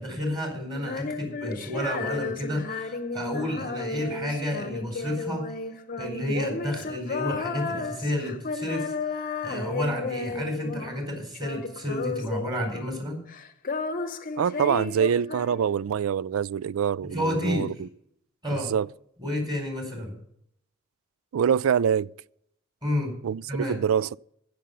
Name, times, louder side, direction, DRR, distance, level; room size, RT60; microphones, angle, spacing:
voice 1, 0.0-5.5 6.0-9.1 9.4-13.2 17.0-17.7 18.4-18.7 19.2-20.1 22.8-23.1 23.5-23.8, left 1 dB, 20° right, 4.3 m, -30 dB
Female singing, 0.7-11.1 11.3-13.0 13.3-16.0, left 3 dB, 40° left, 0.8 m, -33 dB
voice 2, 14.4-17.9 18.5-18.9 21.3-22.1 23.2-23.4 23.7-24.2, right 8 dB, 85° right, 0.4 m, -25 dB
15.0 x 6.8 x 6.9 m
head